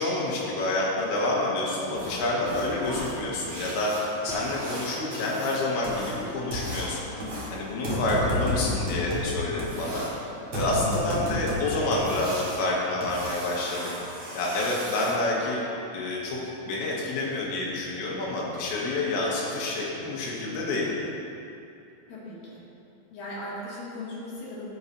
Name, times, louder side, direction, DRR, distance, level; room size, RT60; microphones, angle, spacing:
voice 1, 0.0-7.1 7.5-10.1 10.5-13.9 14.3-15.6 15.9-16.4 16.7-20.9, left 2 dB, 70° left, -4 dB, 3.6 m, -28 dB
sound 1, 1.9-15.1 17.4-17.5 18.0-18.1 18.5-18.6 19.1-19.2 19.7-19.8 20.2-20.3 20.8-20.9, equal, 45° right, 2.1 m, -33 dB
voice 2, 11.2-11.5 22.1-22.6 23.1-24.6, left 1 dB, 50° left, -8 dB, 3.5 m, -38 dB
14.5 x 8.7 x 2.8 m, 2.7 s
omnidirectional pair, 5.7 m